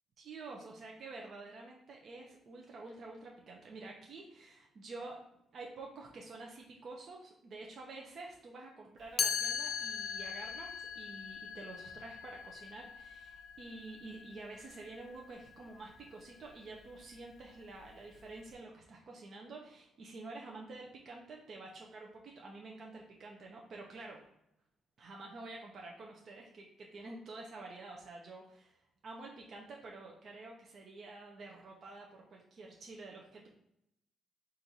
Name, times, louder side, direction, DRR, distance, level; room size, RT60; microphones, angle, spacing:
voice 1, 0.2-24.2 25.0-33.5, right 3 dB, 55° right, -1 dB, 0.7 m, -49 dB
Chime, 9.2-15.0, left 6 dB, 55° left, 0.4 m, -39 dB
4.3 x 2.6 x 4.1 m, 0.81 s
cardioid pair, 90°, 0 cm